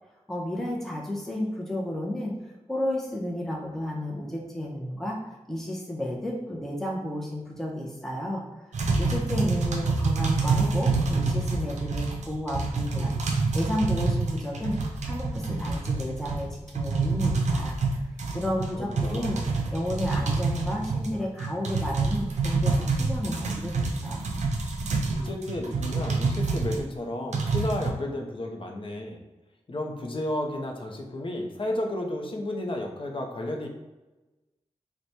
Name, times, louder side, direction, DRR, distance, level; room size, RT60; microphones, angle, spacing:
voice 1, 0.3-2.3 2.7-5.2 5.5-8.4 9.0-14.8 15.0-17.8 18.3-19.4 19.7-23.7 24.0-24.2, left 1 dB, 5° left, -3 dB, 0.7 m, -32 dB
sound 1, 8.7-26.8 27.3-27.9, right 3 dB, 90° right, 0.4 m, -27 dB
voice 2, 18.4-19.4 25.1-29.2 29.7-33.7, left 1 dB, 50° left, 2 dB, 0.6 m, -33 dB
3.1 x 2.2 x 4.1 m, 1.1 s
cardioid pair, 60°, 12 cm